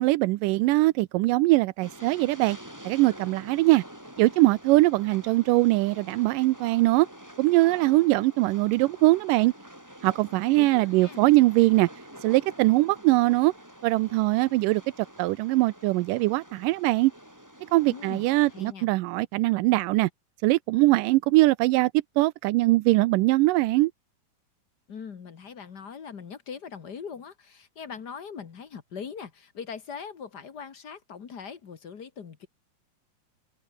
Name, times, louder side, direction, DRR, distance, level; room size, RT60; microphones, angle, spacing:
voice 1, 0.0-2.6 2.9-3.8 4.2-7.1 7.4-9.5 10.0-11.9 12.2-13.5 13.8-17.1 17.7-20.1 20.4-21.9 22.2-23.9, right 20 dB, 80° right, 2.0 m, -22 dB
Train, 1.8-18.7, equal, 5° right, 7.3 m, -47 dB
voice 2, 10.5-11.3 17.9-18.2 18.5-18.9 24.9-32.5, left 6 dB, 50° left, 1.2 m, -41 dB
omnidirectional pair, 4.3 m